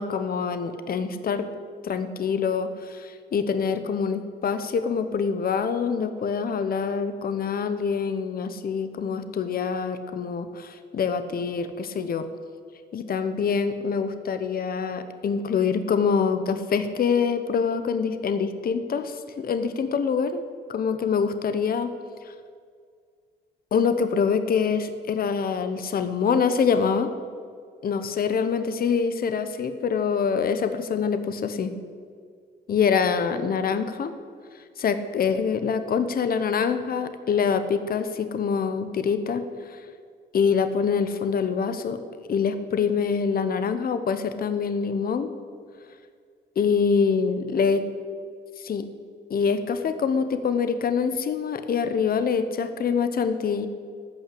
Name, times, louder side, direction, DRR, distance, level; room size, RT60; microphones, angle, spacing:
voice 1, 0.0-1.5 1.8-12.3 12.9-21.9 22.2-22.3 23.7-27.1 27.8-31.7 32.7-34.2 34.8-39.8 40.3-42.0 42.3-45.3 46.6-47.8 48.6-48.9 49.3-53.7, left 6 dB, 50° left, 10 dB, 0.9 m, -25 dB
14.5 x 5.8 x 8.6 m, 2.1 s
cardioid pair, 90°, 20 cm